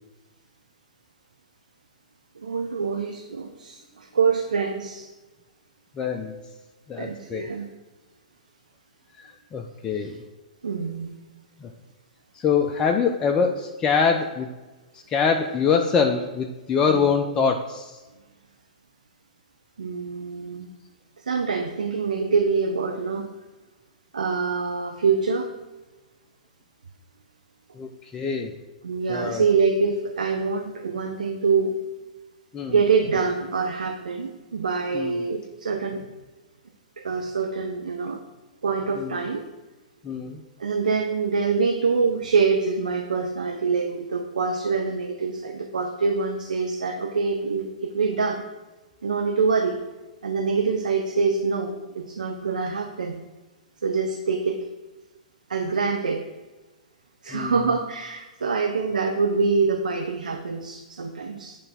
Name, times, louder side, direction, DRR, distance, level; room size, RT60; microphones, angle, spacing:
voice 1, 2.4-5.1 7.0-7.7 10.6-11.1 16.9-17.0 19.8-20.7 21.3-23.3 24.1-25.5 28.8-31.8 32.7-36.0 37.0-38.2 38.6-39.4 40.6-48.5 49.0-49.8 50.2-53.2 53.8-54.6 55.5-56.2 57.2-61.6, right 5 dB, 85° right, 4 dB, 0.6 m, -25 dB
voice 2, 6.0-6.3 6.9-7.5 9.2-10.2 11.6-11.7 12.4-14.5 15.1-18.0 27.7-28.5 29.1-29.4 32.5-32.8 34.9-35.1 39.0-39.2 40.0-40.4 57.3-57.5, left 6 dB, 20° left, 2 dB, 0.5 m, -24 dB
8.8 x 3.4 x 4.2 m, 1.2 s
hypercardioid pair, 120°, 4 cm